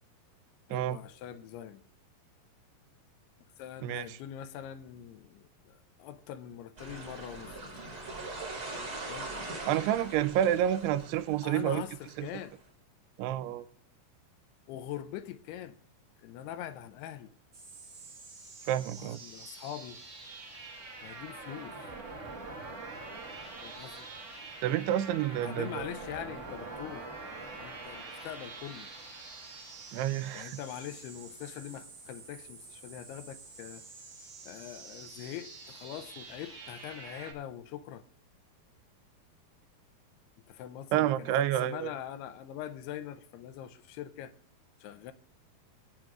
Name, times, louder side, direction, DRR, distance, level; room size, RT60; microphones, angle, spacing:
voice 1, 0.7-1.8 3.6-7.7 9.1-9.3 11.4-12.5 14.7-15.8 16.2-17.3 19.0-20.0 21.0-21.8 23.6-24.1 25.3-27.1 27.4-28.9 30.3-33.8 34.4-38.0 40.5-44.3 44.8-45.1, left 11 dB, 85° left, 2.6 m, -43 dB
voice 2, 3.8-4.2 9.7-11.8 12.2-12.3 13.2-13.7 18.7-19.2 24.6-25.9 29.9-30.6 40.9-41.9, right 11 dB, 85° right, 2.6 m, -29 dB
sound 1, 6.8-12.5, right 2 dB, 25° right, 3.2 m, -42 dB
sound 2, 17.5-37.3, right 3 dB, 60° right, 0.9 m, -46 dB
24.5 x 8.9 x 2.4 m
omnidirectional pair, 4.7 m